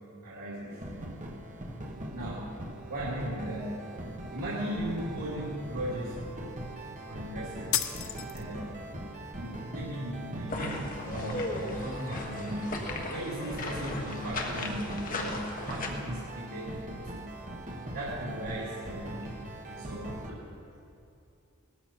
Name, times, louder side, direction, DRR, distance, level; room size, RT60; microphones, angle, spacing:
voice 1, 0.2-0.8 2.1-2.5 2.9-3.7 4.3-6.2 7.1-7.8 8.3-8.8 9.3-12.7 13.1-17.2 17.9-20.3, right 1 dB, 80° right, -8 dB, 2.7 m, -37 dB
sound 1, 0.7-20.3, right 1 dB, 35° right, 1.4 m, -41 dB
sound 2, 7.7-8.7, left 10 dB, 60° left, 0.8 m, -32 dB
sound 3, 10.5-15.9, left 2 dB, 40° left, 1.3 m, -37 dB
17.5 x 13.5 x 4.4 m, 2.6 s
head